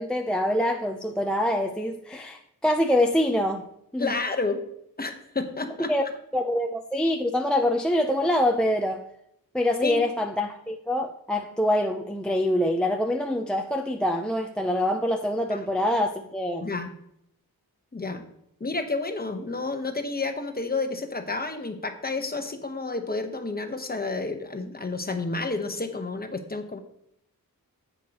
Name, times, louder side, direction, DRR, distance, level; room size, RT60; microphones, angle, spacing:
voice 1, 0.0-3.7 3.9-4.2 5.9-6.0 6.3-9.0 9.5-16.7, left 1 dB, ahead, 3 dB, 0.5 m, -25 dB
voice 2, 4.0-4.6 5.0-5.9 9.8-10.0 15.5-15.6 16.6-16.9 17.9-18.2 18.6-26.8, left 3 dB, 25° left, 6 dB, 1.0 m, -30 dB
10.5 x 8.1 x 2.9 m, 0.75 s
wide cardioid pair, 115°, 37 cm